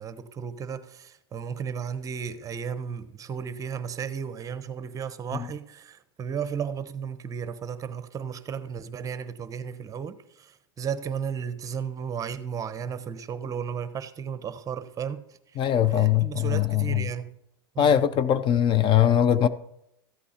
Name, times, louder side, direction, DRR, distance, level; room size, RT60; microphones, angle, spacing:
voice 1, 0.0-15.6 15.9-17.4 17.7-18.1, right 7 dB, 25° right, 0.9 m, -34 dB
voice 2, 15.6-17.0 17.8-19.5, left 10 dB, 35° left, 0.6 m, -21 dB
14.0 x 8.4 x 4.3 m
hypercardioid pair, 115°, 13 cm